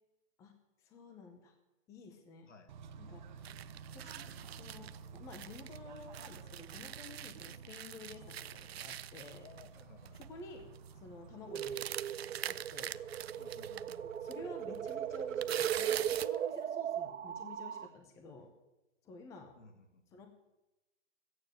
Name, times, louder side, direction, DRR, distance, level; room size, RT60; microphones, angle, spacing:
voice 1, 0.8-1.5 1.9-2.5 3.0-3.2 3.9-9.5 10.1-10.6 10.9-11.9 12.5-12.9 14.0-18.5 19.0-19.5 20.1-20.3, left 3 dB, 10° left, 5 dB, 0.8 m, -52 dB
Bird / Train, 2.7-16.1, right 6 dB, 40° right, 0.9 m, -53 dB
sound 1, 3.4-5.8 6.1-9.8 10.1-10.3 10.6-10.9 11.5-14.0 14.3-14.4 14.7-16.4, right 11 dB, 60° right, 0.5 m, -44 dB
voice 2, 9.4-10.2 13.4-14.1 19.5-20.2, left 3 dB, 85° left, 6 dB, 2.6 m, -57 dB
sound 2, 11.5-17.9, right 9 dB, 90° right, 0.8 m, -38 dB
14.0 x 9.4 x 7.4 m, 1.0 s
hypercardioid pair, 160°, 36 cm